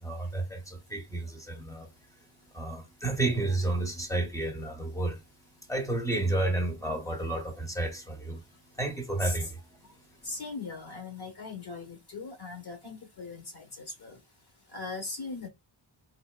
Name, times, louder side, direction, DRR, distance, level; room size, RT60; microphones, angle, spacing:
voice 1, 0.0-1.9 2.5-5.2 5.7-8.4 8.8-9.5, right 2 dB, 5° left, 0.8 m, -31 dB
voice 2, 10.2-14.2 14.7-15.5, left 3 dB, 50° left, 1.2 m, -39 dB
3.9 x 2.6 x 2.3 m
wide cardioid pair, 150°, 49 cm